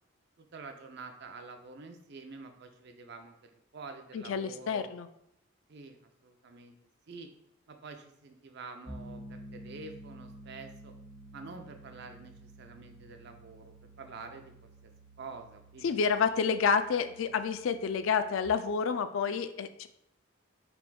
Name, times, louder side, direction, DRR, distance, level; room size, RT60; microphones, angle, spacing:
voice 1, 0.4-4.9 5.7-6.0 6.2-6.7 7.1-7.3 7.7-10.9 11.3-14.7 15.2-15.9, right 4 dB, 55° right, 6 dB, 0.5 m, -47 dB
voice 2, 4.1-5.1 15.8-19.9, left 6 dB, 75° left, 11 dB, 0.4 m, -29 dB
Piano, 8.9-18.5, right 1 dB, 30° left, 1.1 m, -51 dB
5.9 x 3.5 x 2.3 m, 0.77 s
head